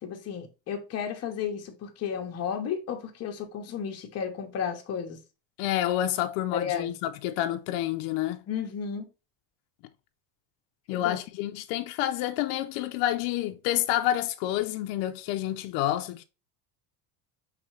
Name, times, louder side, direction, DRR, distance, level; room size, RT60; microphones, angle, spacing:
voice 1, 0.0-5.2 6.5-6.9 8.5-9.1 10.9-11.2, left 7 dB, 30° left, 0.9 m, -33 dB
voice 2, 5.6-8.4 10.9-16.2, left 13 dB, 65° left, 0.5 m, -28 dB
4.9 x 3.3 x 3.1 m
cardioid pair, 150°, 48 cm